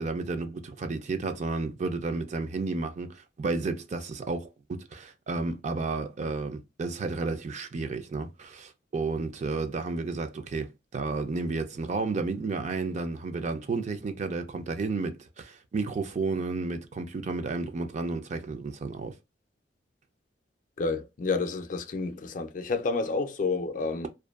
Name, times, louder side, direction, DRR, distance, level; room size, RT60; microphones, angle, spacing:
voice 1, 0.0-19.1, right 3 dB, 40° right, 0.4 m, -32 dB
voice 2, 20.8-24.1, left 4 dB, 45° left, 0.4 m, -29 dB
2.5 x 2.2 x 2.3 m
head